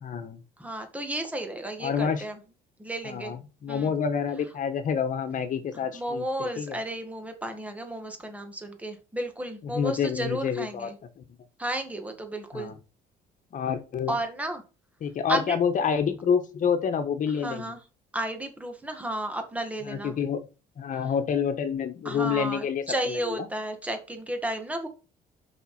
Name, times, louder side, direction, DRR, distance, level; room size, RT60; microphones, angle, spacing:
voice 1, 0.0-0.4 1.8-2.2 3.0-6.8 9.6-10.9 11.2-11.3 12.5-12.8 13.5-14.2 15.0-17.7 19.9-20.5 20.8-23.5, left 7 dB, 50° left, 9 dB, 1.5 m, -28 dB
voice 2, 0.6-2.4 2.8-3.3 3.7-3.9 5.9-11.0 11.6-12.7 14.1-14.6 15.3-15.6 17.4-17.8 18.1-20.2 22.0-24.9, right 1 dB, 10° right, 5 dB, 1.9 m, -33 dB
5.8 x 5.6 x 5.5 m, 0.31 s
cardioid pair, 110°, 17 cm